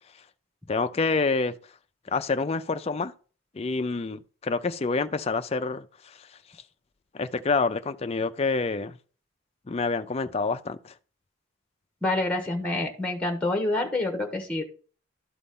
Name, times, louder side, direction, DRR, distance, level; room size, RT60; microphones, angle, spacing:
voice 1, 0.7-1.5 2.1-3.1 3.5-6.3 7.1-9.0 9.7-10.9, left 4 dB, 30° left, 0.4 m, -27 dB
voice 2, 12.0-14.6, left 2 dB, 5° left, 1.1 m, -27 dB
12.0 x 4.1 x 3.7 m
head